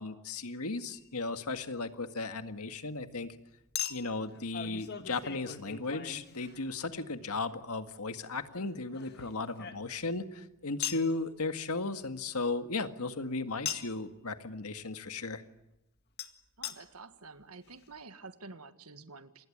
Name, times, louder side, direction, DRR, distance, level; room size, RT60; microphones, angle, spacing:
voice 1, 0.0-3.4 3.9-15.4, left 3 dB, 90° left, 8 dB, 1.9 m, -36 dB
Chink clink, 0.9-1.1 3.8-6.9 8.5-10.2 10.8-11.1 13.7-14.0 16.2-16.3 16.6-16.8 17.4-17.5 17.7-17.8, left 9 dB, 45° left, 1.9 m, -40 dB
voice 2, 16.6-19.5, right 3 dB, 85° right, 10 dB, 1.7 m, -49 dB
28.0 x 20.5 x 8.7 m, 0.90 s
head